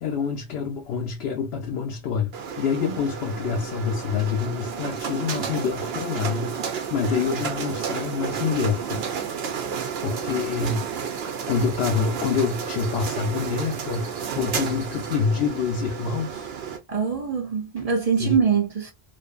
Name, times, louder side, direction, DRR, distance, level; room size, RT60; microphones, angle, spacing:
voice 1, 0.0-6.6 6.9-9.4 10.0-10.9 11.5-16.5 18.2-18.3, left 6 dB, 75° left, 0.8 m, -27 dB
sound 1, 2.3-16.8, right 7 dB, 75° right, 0.9 m, -31 dB
voice 2, 16.9-18.9, right 6 dB, 45° right, 0.5 m, -23 dB
2.5 x 2.5 x 2.3 m
omnidirectional pair, 1.1 m